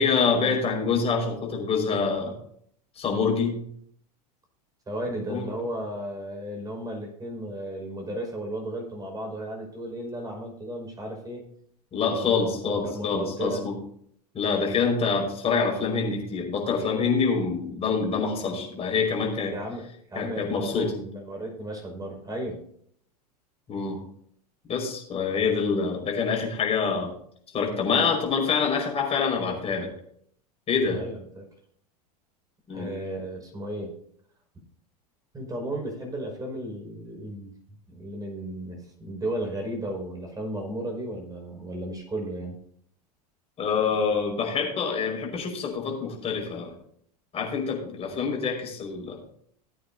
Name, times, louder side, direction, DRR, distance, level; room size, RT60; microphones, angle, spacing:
voice 1, 0.0-2.4 2.9-3.6 5.3-5.5 11.9-13.8 14.3-19.5 20.2-20.9 23.7-24.0 24.7-27.1 27.5-29.9 30.7-31.0 32.7-32.9 43.6-46.7 47.3-49.2, left 5 dB, 30° left, 0 dB, 5.4 m, -26 dB
voice 2, 4.9-11.4 12.1-13.6 19.5-19.8 20.1-22.6 30.9-31.5 32.7-33.9 35.3-37.5 37.9-42.6, right 1 dB, 20° right, 1 dB, 5.5 m, -34 dB
19.5 x 8.9 x 2.8 m, 0.64 s
hypercardioid pair, 85°, 20 cm